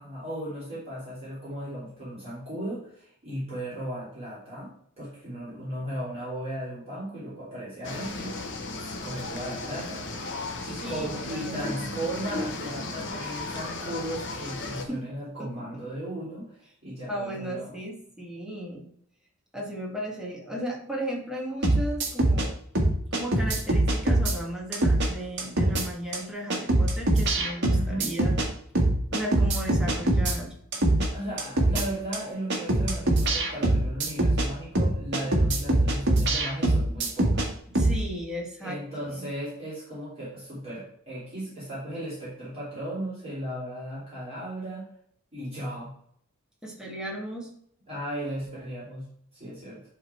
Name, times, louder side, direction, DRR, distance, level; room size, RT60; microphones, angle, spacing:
voice 1, 0.0-8.5 9.0-10.0 10.6-17.7 22.2-22.5 27.7-28.1 30.9-37.5 38.6-44.9 45.3-45.9 47.9-49.1 49.3-49.8, right 1 dB, 30° right, -9 dB, 3.7 m, -36 dB
sound 1, 7.8-14.8, left 3 dB, 60° left, 1.1 m, -35 dB
voice 2, 10.6-12.1 12.8-13.2 14.6-15.0 15.4-15.9 17.1-18.8 19.5-22.5 23.1-28.3 29.1-30.5 37.7-39.3 46.6-47.5, right 1 dB, 5° right, -2 dB, 1.8 m, -36 dB
sound 2, 21.6-22.5 22.7-24.3 24.7-25.1 25.4-25.8 26.1-26.2 26.5-28.5 28.7-30.3 30.7-31.1 31.4-31.8 32.1-32.2 32.5-34.5 34.7-37.5 37.7-38.0, right 1 dB, 55° right, 1.6 m, -23 dB
10.5 x 3.8 x 4.5 m, 0.67 s
head